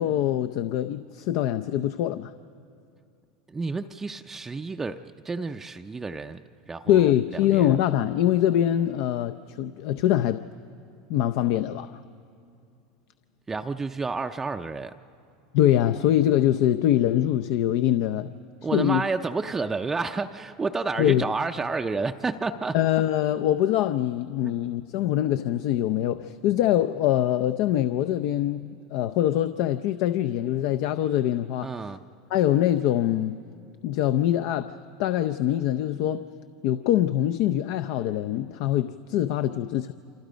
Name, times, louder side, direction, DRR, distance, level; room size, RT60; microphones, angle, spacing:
voice 1, 0.0-2.3 6.9-10.4 11.1-12.0 15.5-18.3 18.7-19.0 21.0-21.2 22.7-31.7 32.3-33.4 33.8-36.2 36.6-39.9, left 12 dB, 60° left, 0.6 m, -24 dB
voice 2, 3.5-7.8 13.5-15.0 18.6-22.8 24.4-24.6 31.6-32.0, right 4 dB, 15° right, 0.5 m, -30 dB
28.0 x 26.0 x 5.1 m
supercardioid pair, 125°, 2 cm